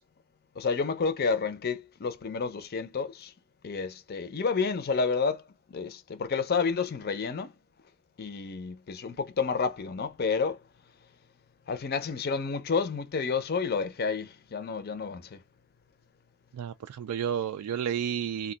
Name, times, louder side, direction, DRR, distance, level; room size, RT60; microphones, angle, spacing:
voice 1, 0.6-3.3 3.6-5.4 5.7-7.5 8.2-10.6 11.7-15.4, left 5 dB, 45° left, 0.5 m, -30 dB
voice 2, 16.5-18.5, right 8 dB, 85° right, 0.3 m, -31 dB
2.4 x 2.2 x 3.8 m
head